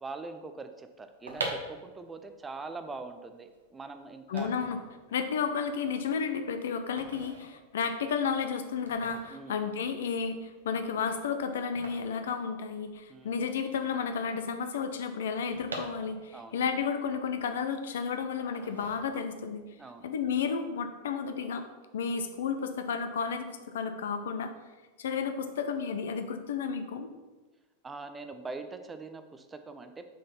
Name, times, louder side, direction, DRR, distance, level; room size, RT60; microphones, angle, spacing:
voice 1, 0.0-4.5 9.3-9.6 13.1-13.4 16.3-16.6 19.8-20.1 27.8-30.0, right 3 dB, 15° right, 8 dB, 0.5 m, -42 dB
sound 1, 1.0-13.1 13.4-13.5 13.7-16.5 16.9-18.0 18.5-19.5 19.9-20.2, right 2 dB, 75° right, 1.1 m, -43 dB
voice 2, 4.3-4.8 5.1-19.6 20.0-21.7 21.9-24.5 25.0-27.1, left 6 dB, 60° left, 8 dB, 0.6 m, -32 dB
6.4 x 4.1 x 5.6 m, 1.2 s
figure-of-eight pair, 90°, 0 cm